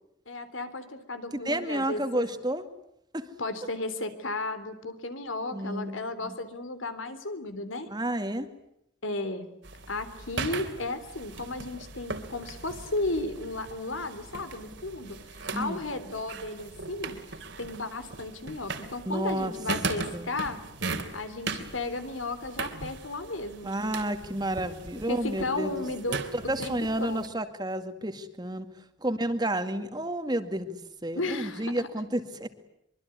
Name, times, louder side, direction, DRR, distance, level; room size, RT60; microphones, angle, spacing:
voice 1, 0.3-2.3 3.4-7.9 9.0-9.5 9.9-17.2 17.6-20.6 21.1-23.7 25.1-26.2 26.6-26.7 27.0-27.3 31.1-31.9, left 2 dB, 85° left, 11 dB, 3.6 m, -34 dB
voice 2, 1.3-2.6 3.1-3.3 5.5-6.4 7.9-8.5 15.5-15.8 19.1-19.5 20.1-20.3 23.6-28.7 29.0-32.5, right 1 dB, 20° right, 9 dB, 2.1 m, -31 dB
sound 1, 9.6-27.3, right 3 dB, 65° right, 3.2 m, -39 dB
25.0 x 24.0 x 9.7 m, 0.78 s
head